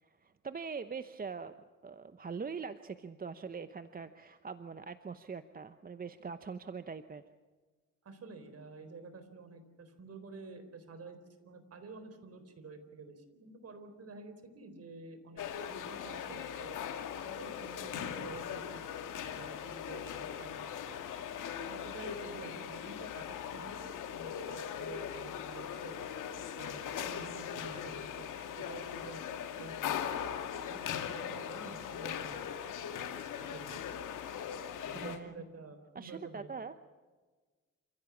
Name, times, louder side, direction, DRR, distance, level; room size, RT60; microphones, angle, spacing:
voice 1, 0.0-1.5 1.8-7.2 34.9-35.4 35.9-36.7, right 5 dB, 30° right, 10 dB, 0.9 m, -43 dB
voice 2, 8.0-11.2 11.4-16.8 17.2-20.9 21.6-23.8 24.1-26.0 26.5-32.4 33.4-33.8 34.8-36.5, right 3 dB, 50° right, 9 dB, 4.1 m, -50 dB
sound 1, 15.4-35.2, left 8 dB, 80° left, 2.3 m, -40 dB
28.0 x 15.5 x 7.3 m, 1.4 s
cardioid pair, 90°, 31 cm